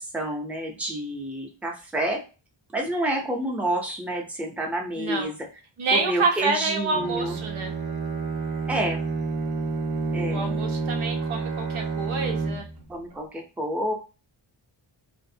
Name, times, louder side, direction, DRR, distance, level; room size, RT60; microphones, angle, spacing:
voice 1, 0.0-2.2 2.7-5.3 5.9-7.4 8.7-9.0 10.1-10.5 12.9-13.9, right 1 dB, 5° right, 1 dB, 0.5 m, -29 dB
voice 2, 5.0-5.3 5.8-7.7 10.3-12.6, right 3 dB, 90° right, 3 dB, 0.7 m, -27 dB
Bowed string instrument, 6.9-12.9, right 4 dB, 50° right, 0.6 m, -29 dB
2.5 x 2.1 x 2.6 m, 0.33 s
wide cardioid pair, 95°, 48 cm